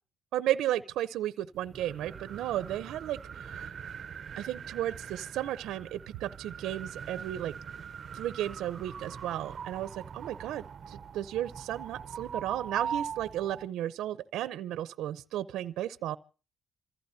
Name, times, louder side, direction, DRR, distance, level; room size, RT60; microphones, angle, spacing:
voice 1, 0.3-3.7 4.4-7.5 8.1-16.2, right 12 dB, 85° right, 0.7 m, -34 dB
sound 1, 1.5-13.7, right 7 dB, 50° right, 0.7 m, -42 dB
28.0 x 15.0 x 2.7 m
cardioid pair, 90°, 0 cm